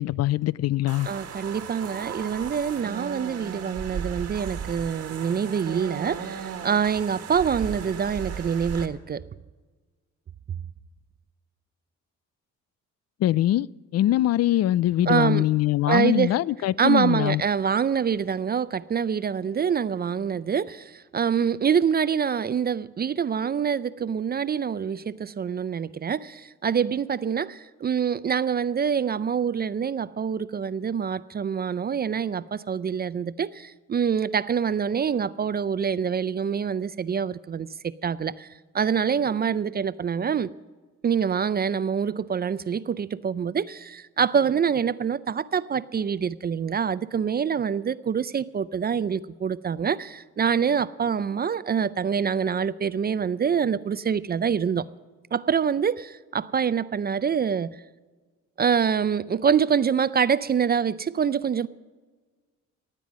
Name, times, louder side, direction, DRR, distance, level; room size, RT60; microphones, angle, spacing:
voice 1, 0.0-1.1 13.2-13.7 13.9-17.4, left 14 dB, 55° left, 0.4 m, -22 dB
sound 1, 0.9-8.9, right 7 dB, 55° right, 1.6 m, -36 dB
voice 2, 1.1-9.2 15.1-15.5 15.8-16.4 16.8-38.5 38.7-40.5 41.0-54.8 55.3-57.7 58.6-61.7, right 7 dB, 35° right, 0.4 m, -25 dB
16.0 x 9.1 x 6.2 m
cardioid pair, 90°, 30 cm